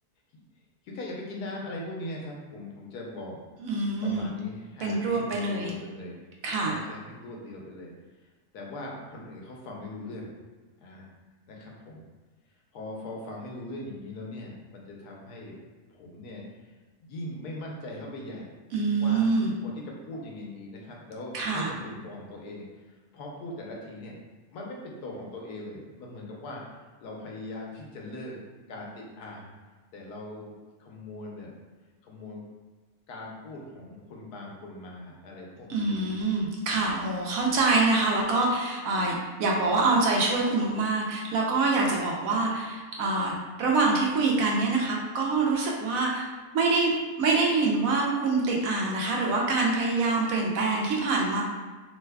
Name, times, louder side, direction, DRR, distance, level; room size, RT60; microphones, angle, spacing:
voice 1, 0.8-3.4 4.0-6.2 6.7-7.9 8.2-8.3 8.5-10.3 10.8-11.1 11.5-12.1 12.7-15.6 15.9-16.7 17.0-18.5 19.0-24.1 24.5-28.4 28.7-29.5 29.9-30.5 30.8-31.5 32.0-32.4 33.1-36.0, left 1 dB, 85° left, -2 dB, 1.2 m, -40 dB
voice 2, 3.6-4.3 4.8-5.7 6.4-6.8 18.7-19.5 21.3-21.7 35.7-51.4, right 3 dB, 70° right, -2 dB, 0.9 m, -25 dB
3.1 x 2.1 x 3.4 m, 1.3 s
omnidirectional pair, 1.6 m